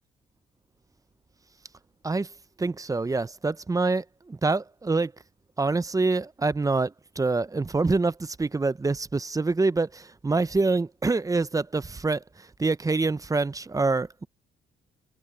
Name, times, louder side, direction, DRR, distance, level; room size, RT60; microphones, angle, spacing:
voice 1, 2.6-5.1 5.6-14.3, right 3 dB, 15° right, 0.6 m, -26 dB
cardioid pair, 90°, 20 cm